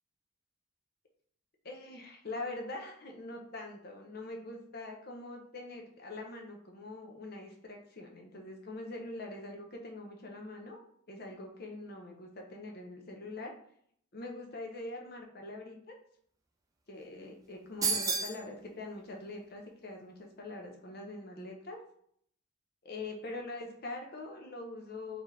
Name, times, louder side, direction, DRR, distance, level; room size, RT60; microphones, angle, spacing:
voice 1, 1.6-10.8 11.1-13.5 14.1-16.0 16.9-21.8 22.8-25.2, left 2 dB, 50° left, 2 dB, 0.7 m, -43 dB
sound 1, 17.8-18.4, right 5 dB, 15° right, 0.4 m, -30 dB
4.2 x 2.9 x 3.2 m, 0.65 s
head